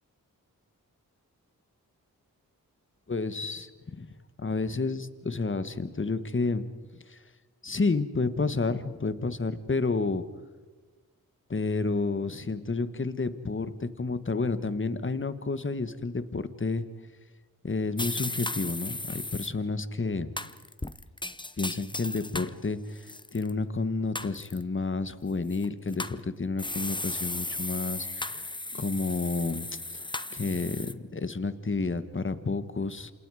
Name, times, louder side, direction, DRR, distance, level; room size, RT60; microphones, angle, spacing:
voice 1, 3.1-4.1 4.4-6.6 7.1-7.2 7.6-10.2 11.5-16.8 17.6-20.3 21.6-28.4 28.7-33.1, left 3 dB, 35° left, 12 dB, 1.5 m, -30 dB
sound 1, 18.0-19.5 20.4-22.5 23.0-23.5 24.2-24.6 25.5-26.2 26.6-30.9, left 2 dB, 15° left, 0.9 m, -35 dB
28.0 x 27.0 x 5.0 m, 1.3 s
cardioid pair, 60°, 36 cm